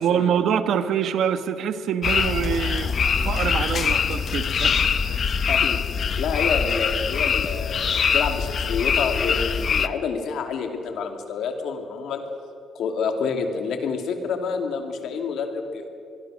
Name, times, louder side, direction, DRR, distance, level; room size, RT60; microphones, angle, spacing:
voice 1, 0.0-4.7 5.1-5.4, right 8 dB, 75° right, 10 dB, 1.3 m, -25 dB
sound 1, 2.0-9.9, left 6 dB, 50° left, 0.9 m, -23 dB
voice 2, 5.4-5.8 6.2-12.3 12.7-15.9, left 5 dB, 75° left, 5 dB, 2.7 m, -28 dB
24.0 x 23.0 x 6.4 m, 2.6 s
cardioid pair, 90°, 0 cm